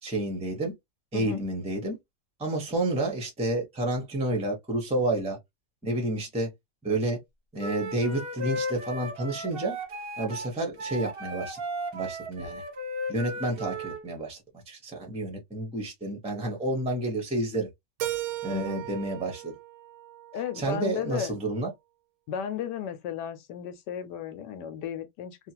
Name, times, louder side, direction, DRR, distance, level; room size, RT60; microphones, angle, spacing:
voice 1, 0.0-0.7 1.1-2.0 2.4-5.4 5.8-6.5 6.8-7.2 7.5-9.8 10.2-11.6 11.9-12.6 13.1-14.4 14.7-17.7 18.4-19.5 20.5-21.7, right 1 dB, 5° right, 0.6 m, -30 dB
Wind instrument woodwind instrument, 7.6-14.0, right 1 dB, 45° right, 0.8 m, -35 dB
Keyboard (musical), 18.0-20.9, right 14 dB, 85° right, 1.2 m, -37 dB
voice 2, 18.5-18.8 20.3-21.3 22.3-25.4, left 8 dB, 90° left, 1.2 m, -34 dB
2.8 x 2.3 x 2.8 m
omnidirectional pair, 1.8 m